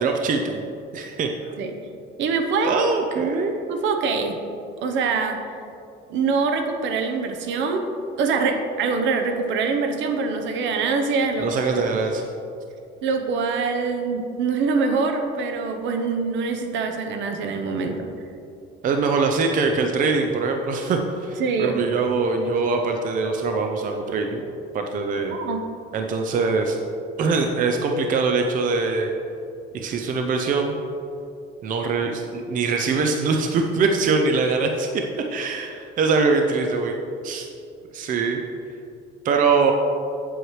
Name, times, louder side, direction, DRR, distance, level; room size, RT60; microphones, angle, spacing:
voice 1, 0.0-0.6 0.9-1.5 2.6-3.5 11.4-12.3 18.8-24.5 24.7-25.4 25.9-26.8 27.2-29.1 29.7-30.8 31.6-34.9 35.3-37.0 37.2-37.5 37.9-38.4 39.2-39.7, right 4 dB, 40° right, 3 dB, 0.6 m, -23 dB
voice 2, 2.2-2.8 3.7-4.4 4.8-5.4 6.1-7.9 8.2-11.5 13.0-18.1 21.4-21.8 25.3-25.6, right 4 dB, 65° right, 5 dB, 0.8 m, -24 dB
8.1 x 7.8 x 3.2 m, 2.7 s
cardioid pair, 140°, 21 cm